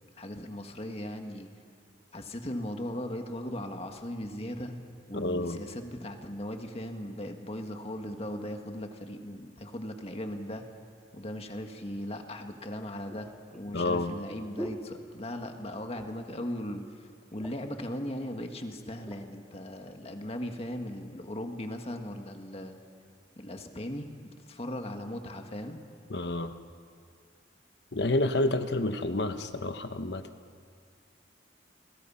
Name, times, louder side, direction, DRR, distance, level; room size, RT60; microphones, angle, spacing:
voice 1, 0.2-1.5 2.1-4.8 5.1-10.7 11.1-16.8 17.3-22.8 23.4-25.8, left 1 dB, 35° left, 5 dB, 1.7 m, -38 dB
voice 2, 5.1-5.6 13.7-14.1 26.1-26.5 27.9-30.2, left 2 dB, 65° left, 9 dB, 1.1 m, -29 dB
sound 1, 12.5-15.6 15.9-16.4 16.7-16.8 17.1-17.8 18.5-19.3 19.9-20.1, equal, ahead, 2.0 m, -45 dB
29.0 x 21.5 x 5.7 m, 2.2 s
head